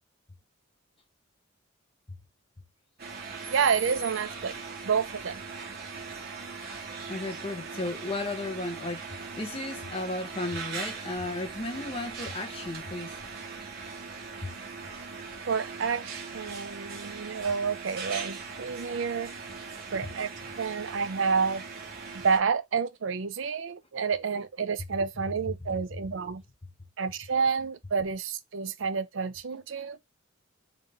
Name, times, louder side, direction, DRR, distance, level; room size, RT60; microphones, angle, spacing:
sound 1, 3.0-22.4, right 5 dB, 50° right, 1.1 m, -40 dB
voice 1, 3.5-4.5 4.8-5.4 15.5-19.3 19.9-20.3 20.6-21.6 22.1-26.4 27.0-30.0, right 5 dB, 65° right, 0.5 m, -29 dB
voice 2, 7.1-13.2 14.4-14.5 25.7-25.8, left 2 dB, 30° left, 0.8 m, -34 dB
4.0 x 2.5 x 3.2 m
head